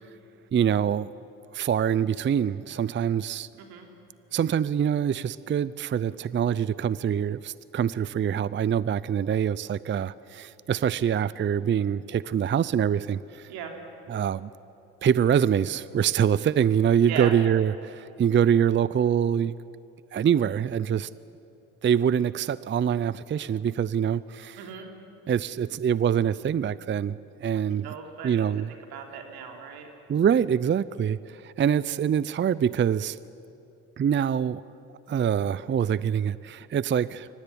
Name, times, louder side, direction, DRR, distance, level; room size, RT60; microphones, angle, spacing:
voice 1, 0.5-1.1 1.5-3.5 4.3-13.5 14.1-14.5 15.0-19.5 20.1-21.1 21.8-24.6 25.3-27.9 28.2-28.7 30.1-33.2 34.0-34.6 35.1-37.3, right 8 dB, 30° right, 18 dB, 0.5 m, -25 dB
voice 2, 3.6-3.9 13.5-13.8 17.0-17.3 24.6-24.9 27.8-29.9, right 7 dB, 80° right, 3 dB, 3.4 m, -38 dB
24.0 x 18.0 x 10.0 m, 2.9 s
supercardioid pair, 65°, 37 cm